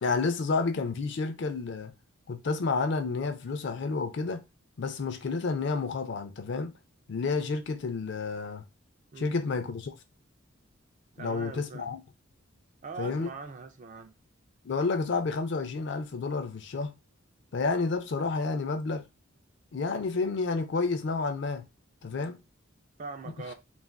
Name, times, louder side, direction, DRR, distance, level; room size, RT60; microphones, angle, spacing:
voice 1, 0.0-1.9 2.3-4.4 4.8-6.7 7.1-8.6 9.2-10.0 11.2-12.0 13.0-13.3 14.6-16.9 17.5-19.0 19.7-21.7 22.0-22.4, left 4 dB, 55° left, 0.4 m, -30 dB
voice 2, 9.1-9.5 11.2-11.9 12.8-14.1 23.0-23.5, right 4 dB, 35° right, 0.3 m, -42 dB
2.5 x 2.3 x 3.3 m
head